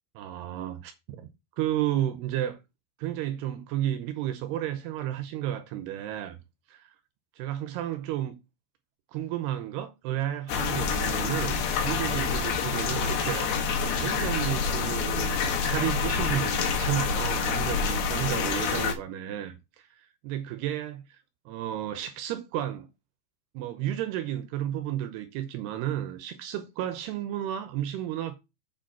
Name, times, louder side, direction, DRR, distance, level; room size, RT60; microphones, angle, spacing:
voice 1, 0.2-1.3 1.6-2.6 3.0-6.4 6.7-6.9 7.4-8.4 9.1-13.5 14.0-22.9 23.5-28.4, right 12 dB, 80° right, 2.8 m, -32 dB
sound 1, 10.5-18.9, left 5 dB, 70° left, 3.3 m, -27 dB
7.2 x 5.1 x 6.0 m
omnidirectional pair, 4.9 m